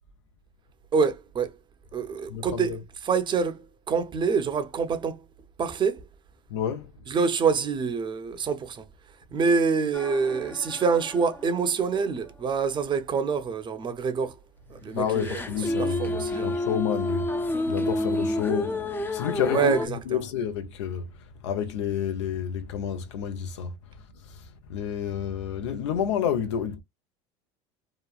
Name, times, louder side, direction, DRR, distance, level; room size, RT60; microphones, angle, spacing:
voice 1, 0.9-1.5 1.9-5.2 5.6-6.0 7.1-8.8 9.3-14.3 14.7-15.4 15.8-16.5 19.5-20.2, right 5 dB, 35° right, 0.6 m, -26 dB
voice 2, 2.3-2.8 6.5-6.9 14.9-21.1 21.4-23.8 24.2-26.8, left 8 dB, 90° left, 0.7 m, -30 dB
sound 1, 9.9-11.7 12.1-12.3 15.1-19.9, left 1 dB, 15° left, 0.5 m, -30 dB
2.9 x 2.2 x 2.4 m
supercardioid pair, 95°, 15 cm